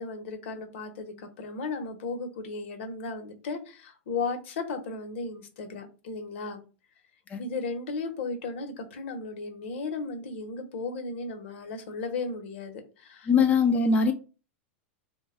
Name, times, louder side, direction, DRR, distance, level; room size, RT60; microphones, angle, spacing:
voice 1, 0.0-6.6 7.4-13.3, left 4 dB, 70° left, 0.9 m, -35 dB
voice 2, 13.3-14.1, left 5 dB, 20° left, 0.5 m, -21 dB
3.2 x 2.2 x 4.3 m
hypercardioid pair, 125°, 7 cm